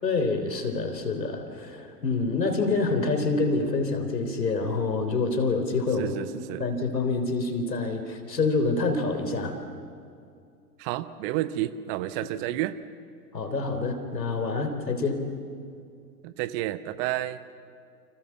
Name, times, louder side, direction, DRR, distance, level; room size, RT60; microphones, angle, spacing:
voice 1, 0.0-6.1 6.6-9.5 13.3-15.3, left 3 dB, 80° left, 6 dB, 3.8 m, -27 dB
voice 2, 6.0-6.7 10.8-12.8 16.2-17.4, right 14 dB, 35° right, 14 dB, 1.0 m, -30 dB
29.5 x 26.5 x 7.2 m, 2.4 s
figure-of-eight pair, 95°, 49 cm